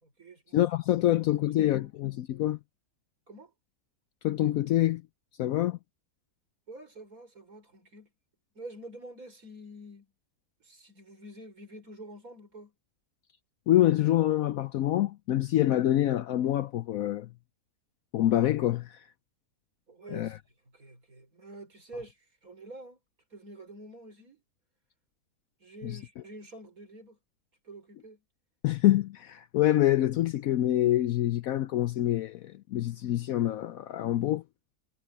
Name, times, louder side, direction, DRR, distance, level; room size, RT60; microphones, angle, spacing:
voice 1, 0.0-0.6 1.3-1.9 3.3-3.5 6.7-8.1 8.6-10.1 10.6-12.7 19.9-20.4 20.7-23.0 23.3-24.4 25.6-27.2 27.6-28.2, right 1 dB, 60° right, 5.5 m, -47 dB
voice 2, 0.5-2.6 4.2-5.0 5.4-5.8 13.7-17.3 18.1-19.0 20.1-20.4 25.8-26.0 28.6-34.4, left 13 dB, 70° left, 0.9 m, -26 dB
omnidirectional pair, 1.7 m